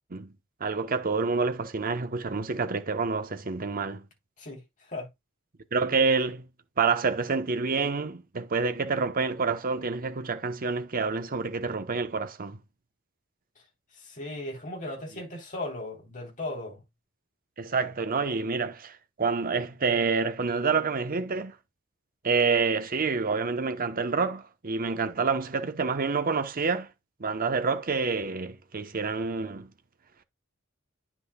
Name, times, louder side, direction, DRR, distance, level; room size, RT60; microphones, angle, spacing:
voice 1, 0.6-4.0 5.7-6.5 6.8-12.6 17.6-21.6 22.2-26.9 27.2-29.7, right 4 dB, 45° right, 0.9 m, -28 dB
voice 2, 14.0-16.8, left 1 dB, 40° left, 3.4 m, -37 dB
9.9 x 6.0 x 2.2 m
head